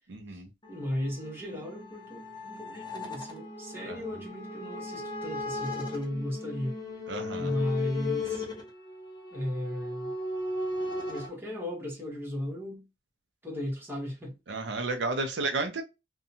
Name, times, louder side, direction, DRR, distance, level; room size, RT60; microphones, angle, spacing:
voice 1, 0.1-0.5 3.9-4.0 7.1-7.5 14.5-15.8, right 3 dB, 70° right, 0.5 m, -32 dB
sound 1, 0.6-11.3, left 2 dB, 25° left, 0.6 m, -37 dB
voice 2, 0.7-6.8 7.4-8.5 9.3-10.1 11.1-12.8 13.4-14.3, left 1 dB, 10° right, 0.9 m, -35 dB
2.7 x 2.2 x 2.6 m
head